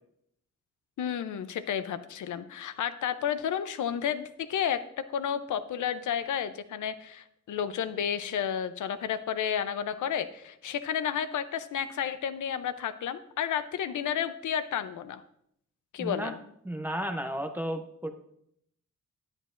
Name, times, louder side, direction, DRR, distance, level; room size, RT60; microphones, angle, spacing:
voice 1, 1.0-4.8 5.1-15.2 15.9-16.4, left 8 dB, 70° left, 12 dB, 0.6 m, -31 dB
voice 2, 16.0-16.3 16.6-18.1, right 1 dB, 5° right, 5 dB, 0.6 m, -33 dB
10.5 x 10.0 x 2.5 m, 0.72 s
wide cardioid pair, 170°, 31 cm